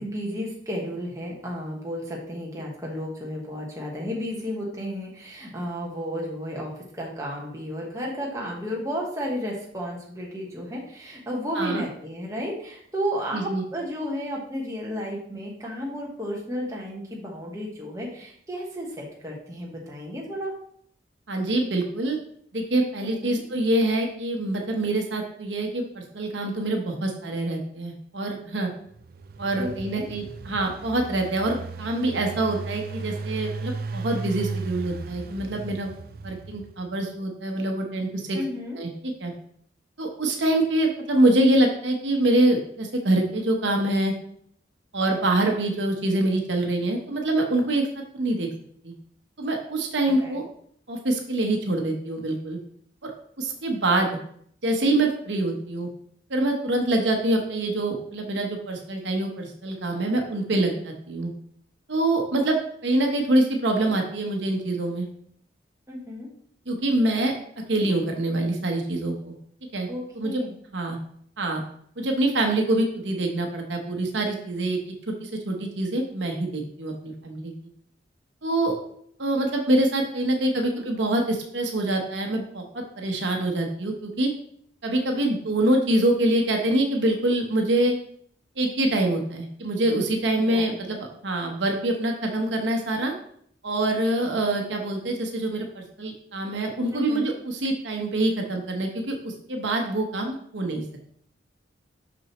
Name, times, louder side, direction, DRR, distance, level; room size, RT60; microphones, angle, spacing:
voice 1, 0.0-20.5 23.2-23.4 29.6-30.1 38.3-38.8 50.2-50.4 65.9-66.3 69.9-70.6 80.6-80.8 90.4-90.7 96.9-97.3, equal, 15° right, -3 dB, 1.2 m, -33 dB
voice 2, 13.3-13.6 21.3-22.2 22.5-28.7 29.4-35.9 36.2-38.4 38.8-39.3 40.0-44.1 44.9-47.9 48.1-48.5 48.8-48.9 49.4-50.4 50.9-52.6 53.0-53.1 53.4-54.1 54.6-55.9 56.3-61.3 61.9-65.1 66.7-67.3 67.7-69.3 69.7-69.9 70.1-70.4 70.7-71.0 71.4-71.6 72.0-74.8 75.1-77.5 78.4-78.8 79.2-84.3 84.8-87.9 88.6-93.1 93.6-100.8, right 1 dB, 75° right, 2 dB, 1.0 m, -25 dB
Engine, 28.9-36.9, right 4 dB, 50° right, 0.4 m, -36 dB
6.1 x 6.1 x 3.0 m, 0.64 s
head